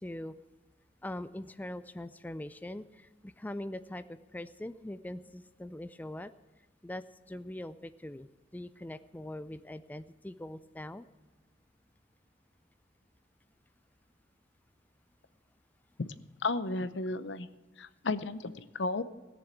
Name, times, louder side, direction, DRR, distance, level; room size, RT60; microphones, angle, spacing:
voice 1, 0.0-0.3 1.0-6.3 6.8-11.1, left 1 dB, 10° left, 13 dB, 0.4 m, -42 dB
voice 2, 16.4-17.5 17.8-19.0, left 3 dB, 75° left, 14 dB, 0.7 m, -33 dB
17.0 x 7.0 x 8.2 m, 1.2 s
head